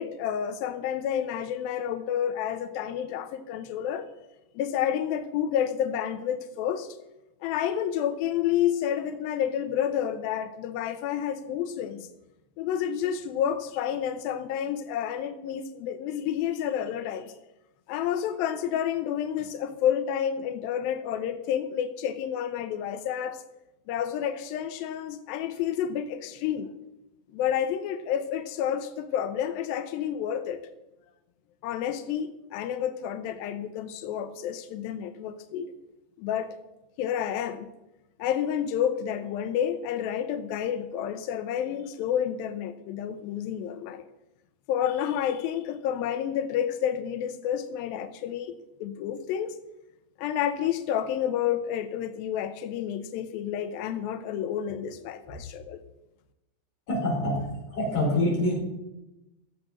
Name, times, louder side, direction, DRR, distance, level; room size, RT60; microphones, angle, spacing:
voice 1, 0.0-4.1 4.6-7.0 7.4-12.1 12.6-17.3 17.9-23.4 23.9-26.7 27.3-30.6 31.6-35.7 36.2-36.6 37.0-37.7 38.2-44.0 44.7-48.5 48.8-49.6 50.2-55.8, left 9 dB, 85° left, 10 dB, 2.1 m, -30 dB
voice 2, 56.9-58.5, left 1 dB, 45° left, -3 dB, 5.6 m, -26 dB
16.0 x 7.6 x 6.0 m, 0.95 s
omnidirectional pair, 5.1 m